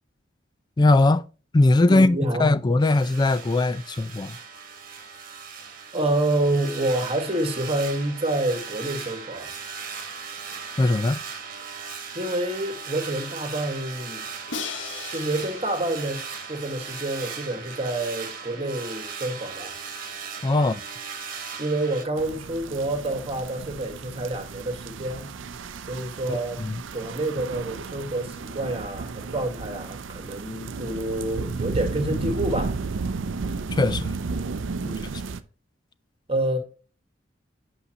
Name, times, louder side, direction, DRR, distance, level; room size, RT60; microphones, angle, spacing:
voice 1, 0.8-1.2 1.5-4.4 10.8-11.2 20.4-20.8 26.3-26.8 33.8-34.1, left 2 dB, 20° left, 0.3 m, -20 dB
voice 2, 1.8-2.5 5.9-9.5 12.2-14.3 15.1-19.7 20.6-20.8 21.6-25.3 25.9-26.6 26.9-32.8 34.8-35.1 36.3-36.6, right 1 dB, 30° right, 1.7 m, -28 dB
sound 1, 2.8-22.1, right 6 dB, 45° right, 1.5 m, -38 dB
Crash cymbal, 14.5-17.4, left 5 dB, 80° left, 1.3 m, -38 dB
sound 2, 22.2-35.4, right 4 dB, 80° right, 0.5 m, -33 dB
8.3 x 5.6 x 2.9 m
head